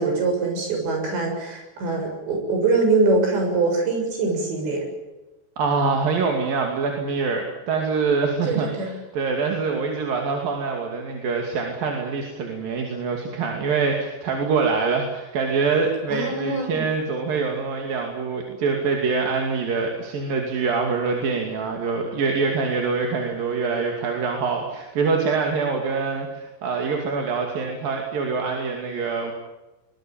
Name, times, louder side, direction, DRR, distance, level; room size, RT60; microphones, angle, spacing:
voice 1, 0.0-4.8 8.4-8.9 16.1-16.9, right 3 dB, 75° right, 3 dB, 9.2 m, -23 dB
voice 2, 5.6-29.3, right 4 dB, 55° right, 2 dB, 4.1 m, -25 dB
23.0 x 22.0 x 9.0 m, 1.1 s
omnidirectional pair, 5.1 m